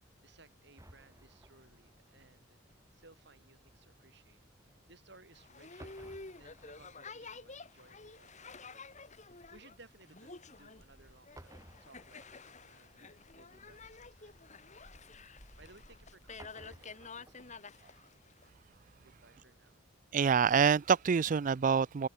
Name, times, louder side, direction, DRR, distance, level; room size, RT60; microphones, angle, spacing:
voice 1, 0.2-11.5 11.8-14.4 15.6-18.1 19.0-19.8, right 3 dB, 60° right, 6.9 m, -62 dB
sound 1, 0.8-5.4 5.7-17.6, right 1 dB, 15° right, 2.8 m, -60 dB
Boat Water vehicle, 5.3-18.5, left 4 dB, 40° left, 3.5 m, -51 dB
voice 2, 20.1-22.1, right 6 dB, 45° right, 0.4 m, -26 dB
head